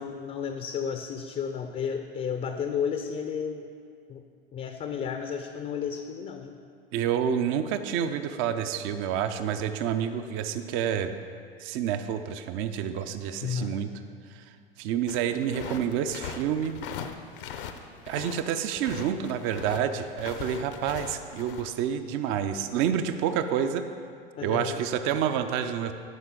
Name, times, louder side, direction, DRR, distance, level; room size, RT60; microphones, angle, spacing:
voice 1, 0.0-3.6 4.1-4.2 4.5-6.6 13.4-13.7 24.4-24.8, left 7 dB, 25° left, 6 dB, 0.5 m, -32 dB
voice 2, 6.9-11.1 11.6-13.9 14.3-14.4 14.8-16.7 18.1-23.9 24.4-25.9, right 8 dB, 45° right, 9 dB, 0.6 m, -28 dB
sound 1, 15.1-18.4 18.7-21.7, left 8 dB, 65° left, 0.8 m, -40 dB
13.0 x 5.6 x 3.8 m, 2.3 s
figure-of-eight pair, 85°, 29 cm